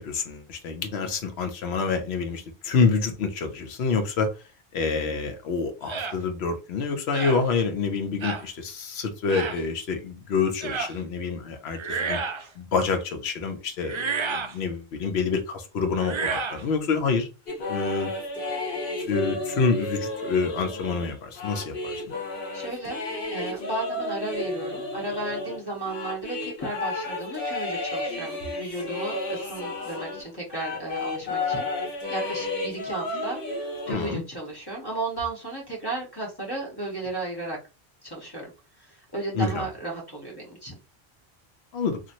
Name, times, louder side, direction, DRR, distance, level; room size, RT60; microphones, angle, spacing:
voice 1, 0.0-4.3 4.7-12.2 12.6-17.3 17.7-18.1 19.0-22.0 33.9-34.2 39.3-39.7 41.7-42.0, left 4 dB, 85° left, 6 dB, 0.9 m, -27 dB
sound 1, 5.9-6.2 7.1-7.4 8.2-8.4 9.3-9.6 10.6-10.9 11.7-12.5 13.8-14.5 16.0-16.6, right 5 dB, 50° right, 0.3 m, -30 dB
sound 2, 17.5-30.2 30.5-33.9, left 2 dB, 60° left, 1.0 m, -32 dB
voice 2, 22.5-33.4 33.9-37.6 38.0-38.5 38.8-40.7, right 2 dB, 25° left, -1 dB, 1.0 m, -34 dB
2.9 x 2.5 x 2.6 m, 0.29 s
omnidirectional pair, 1.0 m